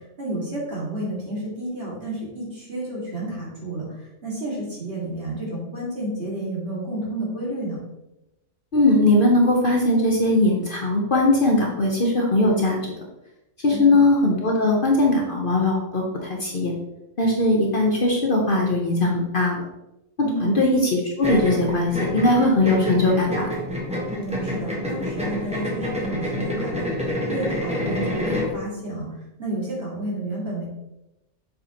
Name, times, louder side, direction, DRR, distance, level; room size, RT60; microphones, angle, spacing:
voice 1, 0.2-7.8 13.7-14.0 20.2-20.6 24.2-29.1 29.4-30.6, right 1 dB, 45° right, -5 dB, 2.4 m, -30 dB
voice 2, 8.7-12.8 13.6-16.7 17.2-19.6 20.4-23.5, left 2 dB, 45° left, -1 dB, 1.1 m, -20 dB
sound 1, 21.2-28.6, equal, 5° right, 1.2 m, -28 dB
7.3 x 5.1 x 3.0 m, 0.93 s
omnidirectional pair, 1.4 m